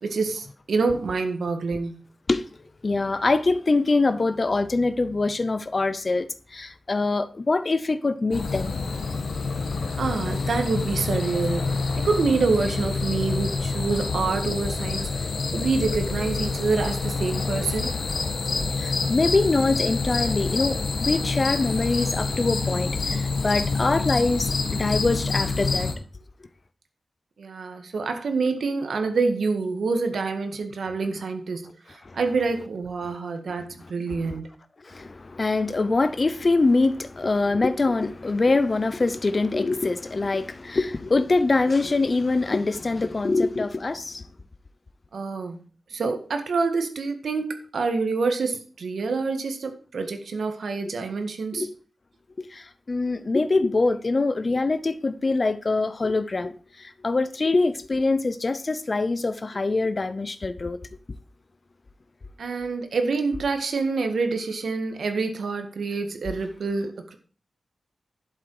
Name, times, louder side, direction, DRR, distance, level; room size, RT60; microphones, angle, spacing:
voice 1, 0.0-2.0 10.0-17.9 27.4-34.5 45.1-45.6 45.9-51.7 62.4-67.2, right 4 dB, 70° right, 1.9 m, -27 dB
voice 2, 2.8-8.7 18.8-25.9 32.0-32.2 34.2-34.4 34.8-44.2 50.9-51.0 51.5-51.7 52.4-60.8, left 3 dB, 30° left, 0.7 m, -24 dB
sound 1, 8.3-25.9, left 4 dB, 60° left, 1.7 m, -27 dB
11.5 x 7.6 x 4.8 m
wide cardioid pair, 180°, 0 cm